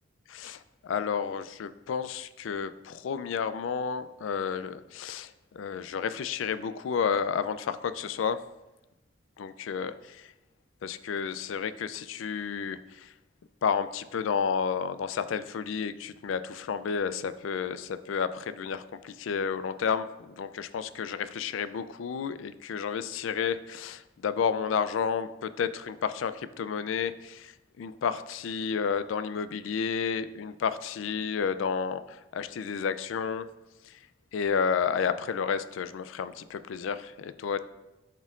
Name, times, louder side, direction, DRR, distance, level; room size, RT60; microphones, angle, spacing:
voice 1, 0.3-8.4 9.4-10.2 10.8-13.1 13.6-27.5 27.8-33.5 34.3-37.7, left 6 dB, 85° left, 13 dB, 0.4 m, -31 dB
11.5 x 4.3 x 2.4 m, 0.99 s
head